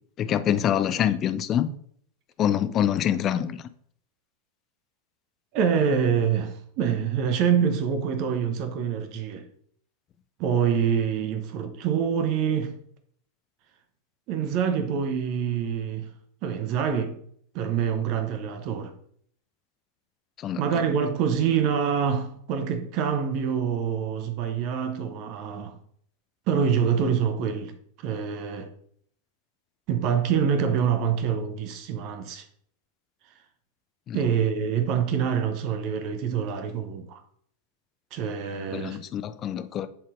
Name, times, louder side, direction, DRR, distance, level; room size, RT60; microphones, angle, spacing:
voice 1, 0.2-1.7 2.4-3.6 20.4-20.6 34.1-34.2 38.7-39.9, left 10 dB, 30° left, 0.4 m, -25 dB
voice 2, 5.5-9.5 10.4-12.7 14.3-16.1 16.4-17.2 17.5-18.9 20.6-25.8 26.5-28.7 29.9-32.5 33.2-33.3 34.1-37.2 38.1-39.0, right 7 dB, 40° right, 0.6 m, -26 dB
10.5 x 3.9 x 2.5 m
figure-of-eight pair, 90°, 0 cm